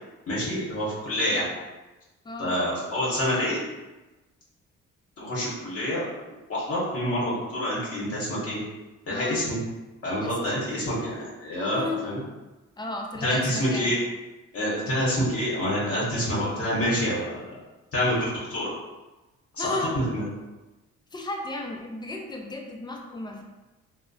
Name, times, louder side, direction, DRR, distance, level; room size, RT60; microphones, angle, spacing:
voice 1, 0.3-1.5 2.4-3.6 5.2-8.6 9.1-9.6 10.0-12.2 13.2-14.0 14.5-17.4 17.9-18.7 19.5-19.8 20.1-20.2, equal, 50° left, -7 dB, 0.9 m, -27 dB
voice 2, 2.2-2.6 9.1-9.4 10.2-10.6 11.7-12.1 12.8-13.9 19.6-20.0 21.1-23.4, left 2 dB, 15° left, 1 dB, 0.3 m, -34 dB
2.8 x 2.0 x 2.6 m, 1.1 s
cardioid pair, 90°, 30 cm